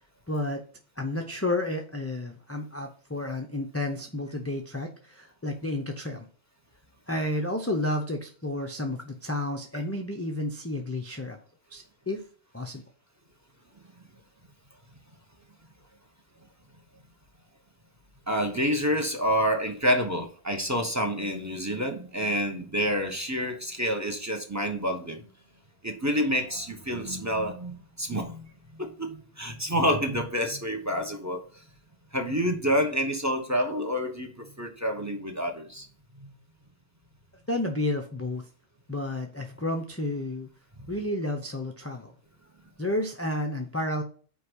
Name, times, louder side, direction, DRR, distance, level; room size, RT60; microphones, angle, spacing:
voice 1, 0.3-0.6 1.0-6.3 7.1-11.4 11.7-12.2 12.5-12.8 37.5-38.5 38.9-40.5 40.9-42.1 42.8-44.0, left 1 dB, 15° left, 3 dB, 0.6 m, -31 dB
voice 2, 18.3-25.3 25.8-31.6 32.1-35.9 36.2-36.3 40.8-40.9, equal, 15° right, 5 dB, 1.1 m, -28 dB
5.7 x 4.7 x 6.3 m, 0.42 s
omnidirectional pair, 1.2 m